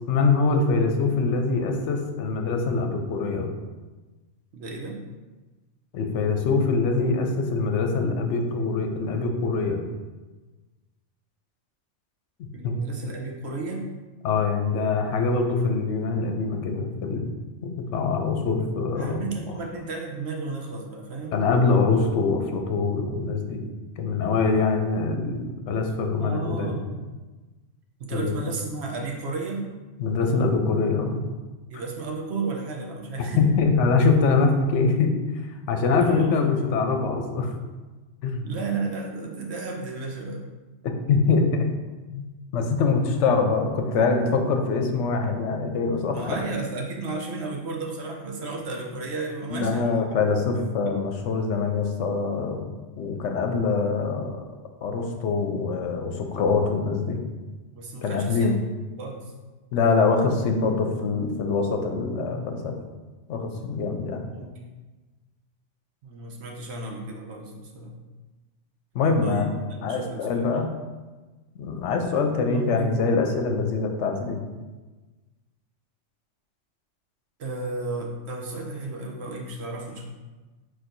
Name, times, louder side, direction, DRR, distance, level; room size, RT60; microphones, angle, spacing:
voice 1, 0.1-3.5 5.9-9.8 12.4-12.8 14.2-17.3 17.6-19.2 21.3-23.6 24.0-26.8 28.1-28.5 30.0-31.2 33.4-35.2 35.7-37.5 38.2-38.4 40.8-41.7 42.1-42.2 42.5-46.4 49.5-54.4 54.8-57.2 58.0-58.6 59.7-62.7 63.3-64.3 68.9-70.7 71.6-74.4, left 4 dB, 75° left, 4 dB, 0.9 m, -24 dB
voice 2, 4.5-5.0 12.5-13.8 19.0-21.4 26.2-27.0 28.0-29.6 31.7-33.5 36.0-36.4 38.4-40.4 46.1-50.0 50.5-50.9 57.7-58.5 59.0-59.3 64.2-64.6 66.0-68.0 69.2-70.5 72.5-73.1 77.4-80.1, right 3 dB, 65° right, 0 dB, 1.0 m, -33 dB
4.4 x 4.4 x 2.6 m, 1.2 s
omnidirectional pair, 1.3 m